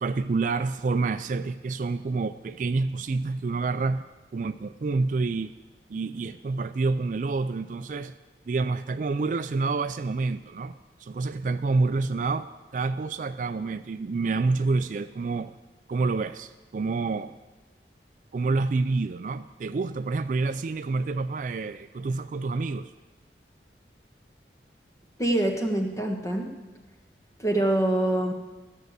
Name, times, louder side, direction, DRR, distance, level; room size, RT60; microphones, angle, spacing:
voice 1, 0.0-4.0 4.3-5.5 5.9-8.1 8.5-15.5 15.9-17.3 18.3-22.9, right 3 dB, 45° right, 11 dB, 0.3 m, -28 dB
voice 2, 25.2-26.5 27.4-28.3, right 1 dB, 20° left, 2 dB, 1.4 m, -25 dB
13.5 x 6.5 x 8.0 m, 1.2 s
head